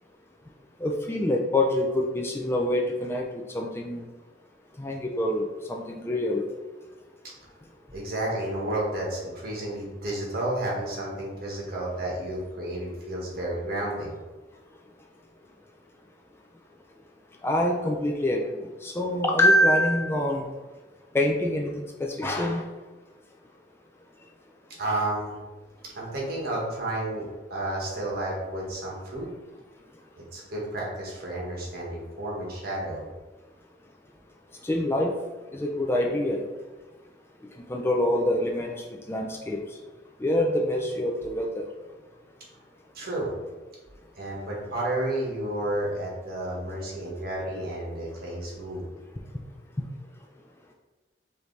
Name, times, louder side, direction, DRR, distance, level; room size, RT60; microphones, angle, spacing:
voice 1, 0.8-4.1 4.8-6.4 17.4-18.4 18.8-20.4 21.1-22.6 34.6-35.1 35.5-36.4 37.7-39.6 40.2-41.7, left 1 dB, 15° left, 1 dB, 0.3 m, -25 dB
voice 2, 7.9-14.2 24.8-25.3 25.9-29.3 30.3-33.0 42.9-43.3 44.2-48.8, right 1 dB, 55° right, -3 dB, 1.3 m, -31 dB
4.9 x 2.7 x 3.2 m, 1.2 s
head